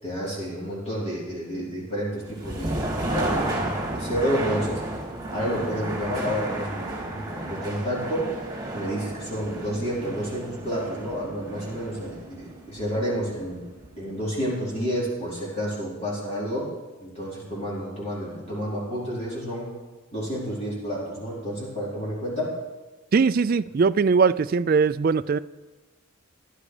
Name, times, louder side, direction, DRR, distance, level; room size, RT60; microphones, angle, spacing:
voice 1, 0.0-4.8 5.3-8.3 8.7-13.6 14.0-16.7 17.0-19.7 20.1-22.5, equal, 30° left, 4.6 m, -30 dB
sound 1, 2.2-14.1, right 1 dB, 20° right, 2.4 m, -33 dB
voice 2, 23.1-25.4, right 5 dB, 45° right, 0.3 m, -20 dB
15.0 x 12.0 x 5.0 m
head